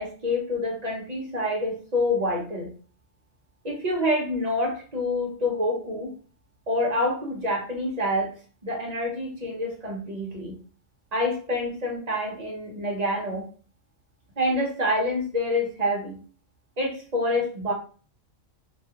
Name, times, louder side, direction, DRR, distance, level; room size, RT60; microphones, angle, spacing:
voice 1, 0.0-2.7 3.6-6.1 6.7-8.3 8.6-10.5 11.1-13.5 14.4-16.2 16.8-17.7, left 1 dB, 40° right, 0 dB, 0.7 m, -27 dB
3.0 x 2.3 x 2.8 m, 0.39 s
omnidirectional pair, 1.4 m